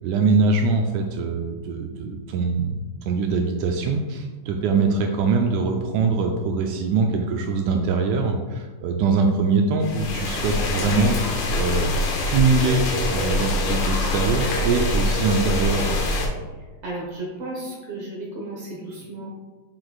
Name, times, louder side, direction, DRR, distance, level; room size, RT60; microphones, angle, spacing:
voice 1, 0.0-2.8 3.1-11.9 12.2-15.9, right 4 dB, 80° right, 3 dB, 1.8 m, -23 dB
sound 1, 9.8-16.3, left 2 dB, 65° left, 1.7 m, -24 dB
voice 2, 16.8-19.4, right 2 dB, 65° right, -2 dB, 1.6 m, -33 dB
7.5 x 6.1 x 2.4 m, 1.3 s
omnidirectional pair, 3.7 m